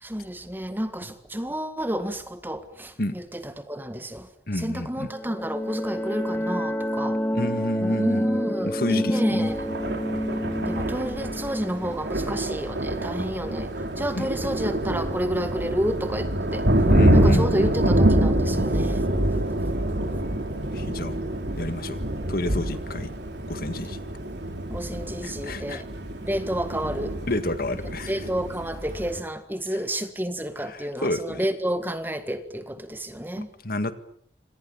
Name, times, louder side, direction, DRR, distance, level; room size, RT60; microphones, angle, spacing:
voice 1, 0.0-4.3 4.5-7.2 7.8-9.7 10.7-16.7 17.1-19.1 24.7-25.9 26.2-27.2 28.1-33.5, equal, 10° right, 1.8 m, -30 dB
voice 2, 4.5-5.1 7.3-9.5 14.1-14.3 16.9-18.0 20.7-21.2 21.6-22.0 22.3-23.1 23.5-24.0 25.2-25.8 27.3-28.1 30.7-31.5 33.6-33.9, left 1 dB, 55° left, 1.9 m, -29 dB
sound 1, 5.0-13.5, equal, 10° left, 1.1 m, -29 dB
Thunder, 9.5-29.2, right 1 dB, 70° right, 4.5 m, -26 dB
28.0 x 26.0 x 7.2 m
head